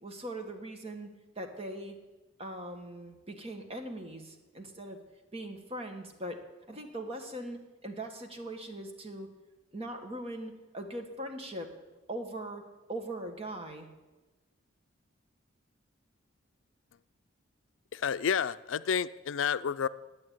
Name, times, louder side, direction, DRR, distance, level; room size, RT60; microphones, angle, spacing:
voice 1, 0.0-2.0 2.4-5.0 5.3-6.4 6.7-9.3 9.7-11.7 12.1-12.6 12.9-13.9, right 1 dB, 30° right, 4 dB, 1.7 m, -40 dB
voice 2, 17.9-19.9, left 7 dB, 70° left, 14 dB, 0.4 m, -30 dB
11.0 x 8.7 x 9.1 m, 1.2 s
head